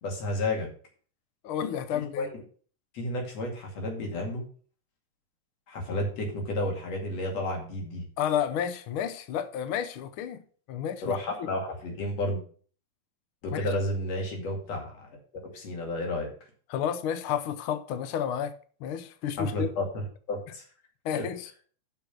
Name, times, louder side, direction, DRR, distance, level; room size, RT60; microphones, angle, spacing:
voice 1, 0.0-0.7 1.9-2.4 2.9-4.4 5.7-8.0 11.0-12.4 13.4-16.3 19.4-20.6 21.1-21.3, left 1 dB, 60° left, 3.5 m, -32 dB
voice 2, 1.4-2.3 8.2-10.4 10.7-11.2 13.5-13.7 16.7-18.5 18.8-19.7 21.0-21.6, left 9 dB, 80° left, 1.2 m, -31 dB
7.6 x 6.0 x 6.1 m
omnidirectional pair, 3.3 m